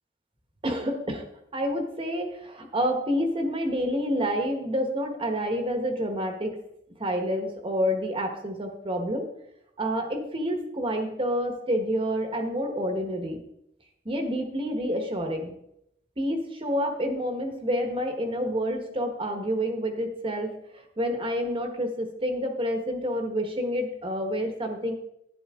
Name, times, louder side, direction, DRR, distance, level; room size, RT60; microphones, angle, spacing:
voice 1, 0.6-1.2 1.5-6.6 7.0-9.3 9.8-13.4 14.0-15.5 16.2-25.0, equal, 30° right, 4 dB, 1.4 m, -28 dB
11.5 x 9.7 x 3.7 m, 0.77 s
head